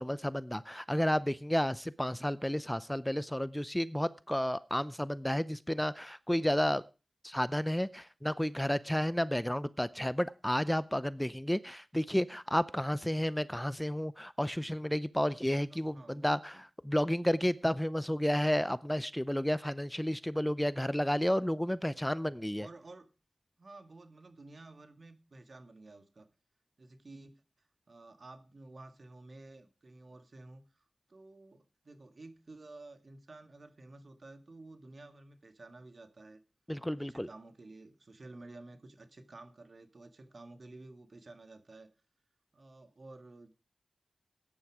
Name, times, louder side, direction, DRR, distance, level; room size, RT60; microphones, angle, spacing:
voice 1, 0.0-6.8 7.2-16.5 16.9-22.7 36.7-37.3, equal, 5° left, 17 dB, 0.6 m, -31 dB
voice 2, 15.7-16.4 22.3-23.1 23.6-26.3 26.8-27.4 27.9-30.8 31.1-36.4 37.0-41.9 42.5-43.5, right 2 dB, 60° right, 9 dB, 2.0 m, -52 dB
14.5 x 10.0 x 4.9 m, 0.32 s
cardioid pair, 50°, 0 cm